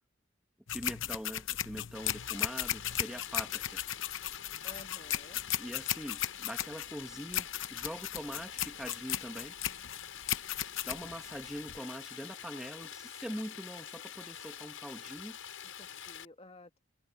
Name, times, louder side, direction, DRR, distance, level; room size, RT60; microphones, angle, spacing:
sound 1, 0.7-11.8, left 12 dB, 70° left, 0.8 m, -36 dB
voice 1, 0.7-3.8 5.6-9.6 10.8-15.4, equal, 5° right, 1.8 m, -43 dB
Stream, 1.9-16.3, left 9 dB, 85° left, 6.3 m, -46 dB
voice 2, 2.5-3.0 4.6-5.4 15.6-16.8, left 1 dB, 30° left, 2.4 m, -54 dB
head